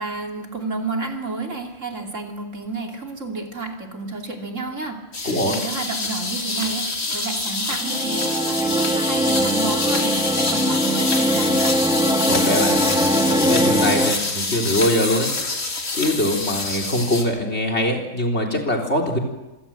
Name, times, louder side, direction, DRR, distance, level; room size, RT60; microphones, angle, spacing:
voice 1, 0.0-11.8, right 3 dB, 60° right, 2 dB, 3.2 m, -31 dB
sound 1, 5.1-17.2, left 3 dB, 70° left, 3.1 m, -26 dB
voice 2, 5.2-5.6 12.2-15.3 16.0-19.2, left 1 dB, 50° left, 5 dB, 4.0 m, -23 dB
sound 2, 7.8-14.2, equal, 5° right, 1.5 m, -21 dB
26.0 x 18.0 x 7.7 m, 1.1 s
omnidirectional pair, 1.4 m